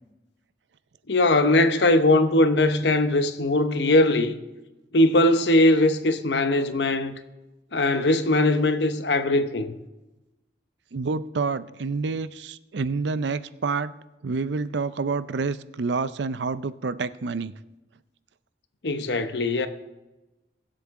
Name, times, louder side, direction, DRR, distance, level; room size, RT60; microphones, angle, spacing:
voice 1, 1.1-4.3 4.9-7.2 7.7-9.7 18.8-19.7, left 2 dB, 80° left, 0.9 m, -20 dB
voice 2, 10.9-13.9 14.2-17.5, right 4 dB, 85° right, 0.5 m, -28 dB
22.0 x 7.7 x 3.7 m
head